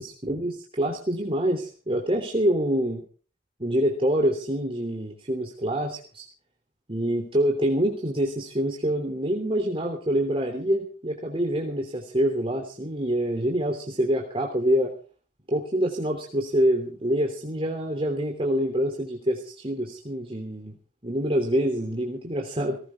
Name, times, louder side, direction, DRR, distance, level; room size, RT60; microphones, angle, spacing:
voice 1, 0.0-3.0 3.6-6.2 6.9-14.9 15.5-20.7 21.0-22.8, equal, 30° right, 2 dB, 3.1 m, -26 dB
19.5 x 18.0 x 3.7 m, 0.39 s
head